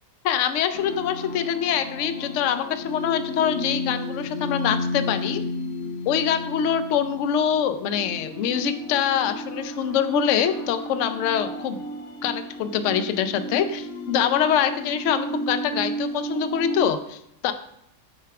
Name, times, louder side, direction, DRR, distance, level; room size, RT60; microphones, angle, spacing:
voice 1, 0.2-5.4 6.1-11.8 12.2-17.5, left 8 dB, 80° left, 10 dB, 0.6 m, -24 dB
sound 1, 0.7-16.9, left 1 dB, 65° left, 1.0 m, -33 dB
13.0 x 4.6 x 2.3 m, 0.76 s
omnidirectional pair, 1.8 m